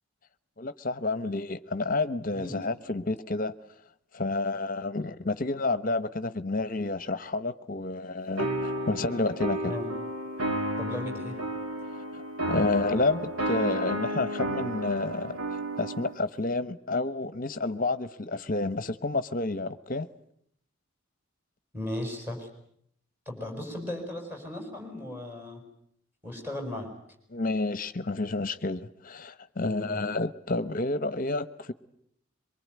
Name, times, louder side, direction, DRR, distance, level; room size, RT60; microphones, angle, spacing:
voice 1, 0.6-3.5 4.1-9.7 12.1-20.1 27.3-31.7, left 2 dB, 40° left, 1.0 m, -30 dB
sound 1, 8.4-16.2, right 1 dB, 85° right, 2.1 m, -32 dB
voice 2, 10.8-11.4 21.7-22.5 23.3-25.6 26.2-26.9 29.6-30.0, left 1 dB, 10° right, 6.3 m, -36 dB
24.0 x 23.5 x 9.5 m
head